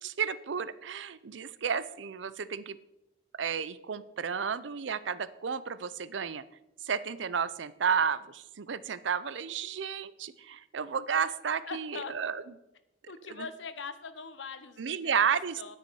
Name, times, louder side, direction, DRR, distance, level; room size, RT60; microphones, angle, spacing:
voice 1, 0.0-2.8 3.4-6.4 6.8-12.4 13.3-13.5 14.8-15.6, right 7 dB, 85° right, 16 dB, 0.5 m, -32 dB
voice 2, 11.6-12.1 13.1-15.2 15.6-15.8, left 5 dB, 85° left, 12 dB, 0.9 m, -41 dB
9.7 x 9.5 x 4.6 m, 0.89 s
head